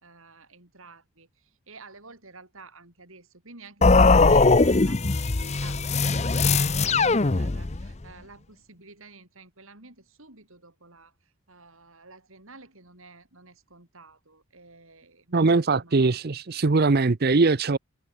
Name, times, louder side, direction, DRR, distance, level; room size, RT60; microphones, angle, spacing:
voice 1, 0.0-16.0, right 3 dB, 65° right, 5.1 m, -50 dB
sound 1, 3.8-7.9, left 3 dB, 30° left, 0.7 m, -20 dB
voice 2, 15.3-17.8, right 3 dB, 45° right, 0.6 m, -21 dB
head